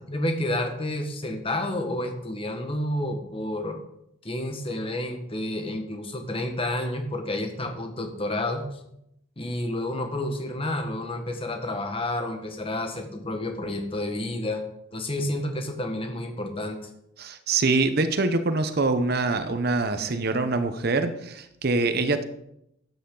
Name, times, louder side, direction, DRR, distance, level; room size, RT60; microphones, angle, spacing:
voice 1, 0.1-3.8 4.2-8.8 9.4-14.6 14.9-16.8, left 1 dB, 30° left, 5 dB, 1.4 m, -30 dB
voice 2, 17.2-22.3, right 3 dB, 55° right, 9 dB, 0.8 m, -24 dB
12.5 x 9.2 x 3.9 m, 0.78 s
head